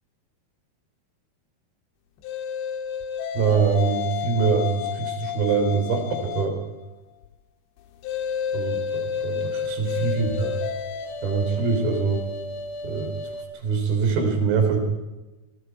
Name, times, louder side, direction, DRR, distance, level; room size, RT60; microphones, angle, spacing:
sound 1, 2.2-6.6 8.0-13.4, left 7 dB, 85° left, 3.7 m, -31 dB
voice 1, 3.3-6.6 8.5-10.6 11.2-12.2 12.8-13.1 13.5-14.8, right 5 dB, 65° right, 4 dB, 5.4 m, -24 dB
28.0 x 22.5 x 4.8 m, 1.1 s
omnidirectional pair, 4.8 m